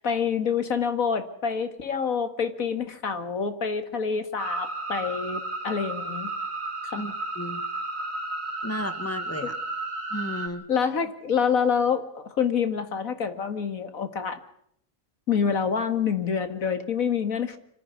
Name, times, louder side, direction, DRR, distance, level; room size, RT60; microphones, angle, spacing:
voice 1, 0.0-6.3 6.9-7.0 10.7-14.4 15.3-17.6, left 6 dB, 85° left, 9 dB, 2.3 m, -27 dB
sound 1, 4.4-10.5, right 2 dB, 75° right, 2.9 m, -33 dB
voice 2, 7.0-7.6 8.6-9.5 10.1-10.7, left 1 dB, 10° left, 8 dB, 1.8 m, -33 dB
25.5 x 14.0 x 9.5 m, 0.71 s
omnidirectional pair, 1.4 m